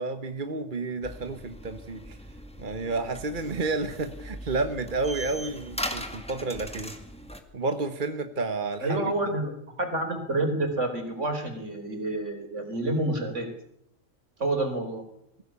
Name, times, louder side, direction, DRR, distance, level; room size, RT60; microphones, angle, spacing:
voice 1, 0.0-2.2 2.6-6.9 7.5-9.0, right 3 dB, 40° right, 8 dB, 1.4 m, -31 dB
sound 1, 1.0-7.4, equal, 5° left, 2.1 m, -39 dB
voice 2, 8.8-13.5 14.4-15.0, right 2 dB, 65° right, 5 dB, 4.4 m, -28 dB
22.0 x 16.0 x 8.4 m, 0.75 s
omnidirectional pair, 1.3 m